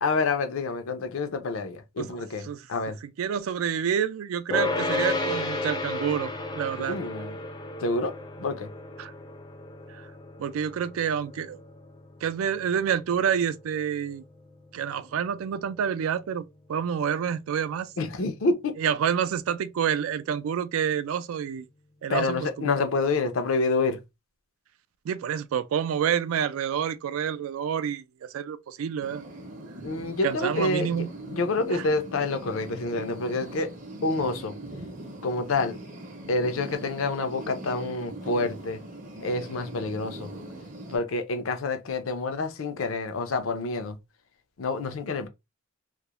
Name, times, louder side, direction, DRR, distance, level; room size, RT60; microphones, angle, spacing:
voice 1, 0.0-3.0 6.8-7.4 7.8-8.1 8.4-8.7 18.0-18.8 22.1-24.0 29.8-33.7 34.0-34.5 35.2-35.8 36.3-38.8 39.2-40.3 40.9-44.0 44.6-45.3, left 3 dB, 75° left, 0.5 m, -28 dB
voice 2, 3.2-7.0 9.0-9.1 10.4-11.6 12.2-14.2 14.7-17.9 18.8-21.7 22.0-22.7 25.1-28.0 28.3-29.2 30.2-31.1 31.7-31.8, right 8 dB, 85° right, 0.3 m, -28 dB
sound 1, 4.5-15.8, left 2 dB, 20° left, 0.4 m, -34 dB
sound 2, 29.0-41.0, right 1 dB, 40° right, 0.6 m, -41 dB
2.4 x 2.0 x 2.9 m
head